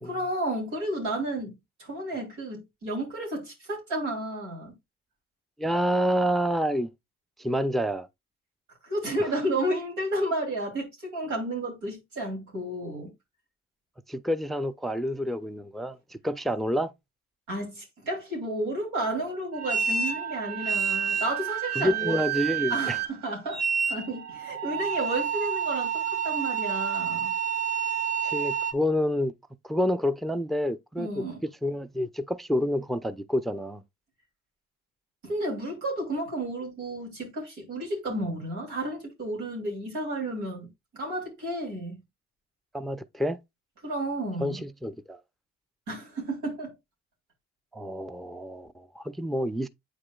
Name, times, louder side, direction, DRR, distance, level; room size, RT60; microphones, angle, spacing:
voice 1, 0.0-4.8 8.8-13.1 17.5-22.2 22.7-23.6 23.9-27.3 31.0-31.4 35.2-42.0 43.8-44.6 45.9-46.8, right 1 dB, 90° right, 2.9 m, -32 dB
voice 2, 5.6-6.9 7.4-8.1 14.1-16.9 21.8-23.0 28.2-29.3 29.6-33.8 42.7-43.4 44.4-45.2 47.7-49.7, equal, ahead, 0.5 m, -28 dB
sound 1, 19.5-28.7, right 7 dB, 60° right, 1.0 m, -29 dB
8.3 x 4.9 x 2.3 m
supercardioid pair, 65°, 29 cm